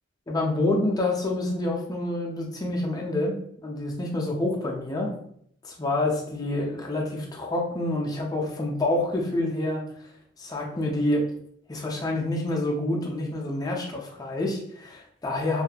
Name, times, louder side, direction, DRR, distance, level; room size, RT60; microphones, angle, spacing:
voice 1, 0.3-3.4 3.6-5.1 5.6-9.8 10.4-11.2 11.7-15.6, left 1 dB, 20° left, -1 dB, 0.4 m, -27 dB
2.7 x 2.3 x 2.2 m, 0.67 s
head